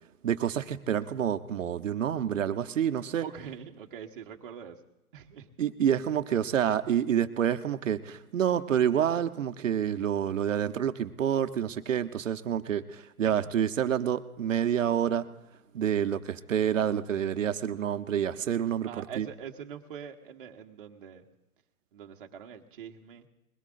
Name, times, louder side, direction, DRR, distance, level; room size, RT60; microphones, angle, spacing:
voice 1, 0.2-3.2 5.6-15.3 15.7-19.3, right 9 dB, 60° right, 9 dB, 0.9 m, -28 dB
voice 2, 3.2-4.8 5.1-5.5 13.2-13.4 18.8-21.3 21.9-23.3, right 8 dB, 35° right, 3 dB, 1.1 m, -43 dB
21.5 x 17.0 x 2.5 m, 0.94 s
hypercardioid pair, 155°, 44 cm